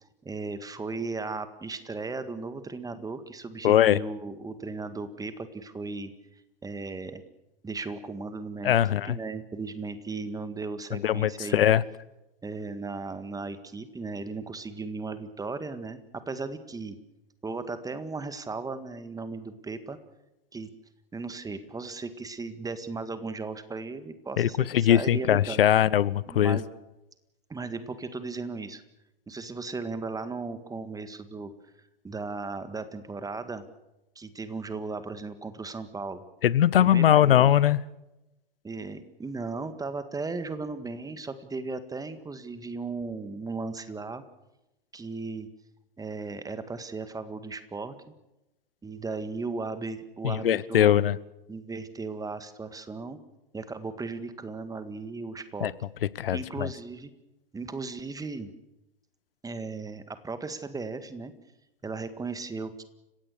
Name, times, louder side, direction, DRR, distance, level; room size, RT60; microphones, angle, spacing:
voice 1, 0.2-6.1 6.6-7.2 7.6-11.7 12.4-17.0 17.4-20.0 20.5-20.7 21.1-25.7 26.3-26.6 27.5-28.8 29.3-31.5 32.0-33.6 34.2-36.2 36.8-37.5 38.6-44.2 44.9-45.5 46.0-48.1 48.8-51.0 51.5-53.2 53.5-55.7 56.3-57.1 57.5-58.5 59.4-61.3 61.8-62.8, right 3 dB, 10° right, 1.9 m, -36 dB
voice 2, 3.6-4.0 8.6-9.2 10.9-11.8 24.4-26.6 36.4-37.8 50.2-51.2 55.6-55.7 56.2-56.7, left 11 dB, 75° left, 1.0 m, -21 dB
30.0 x 17.0 x 6.8 m
hypercardioid pair, 100°, 29 cm